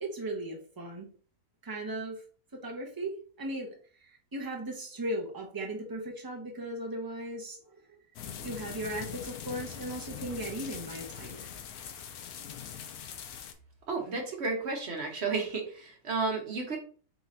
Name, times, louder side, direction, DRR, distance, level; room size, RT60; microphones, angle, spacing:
voice 1, 0.0-1.1 1.6-2.2 2.5-3.7 4.0-8.0 8.4-11.5, right 1 dB, 20° right, 0 dB, 0.7 m, -37 dB
sound 1, 8.2-13.5, left 8 dB, 75° left, 1.1 m, -42 dB
voice 2, 13.9-16.8, right 4 dB, 50° right, 2 dB, 1.2 m, -32 dB
4.1 x 2.8 x 3.7 m, 0.42 s
omnidirectional pair, 1.6 m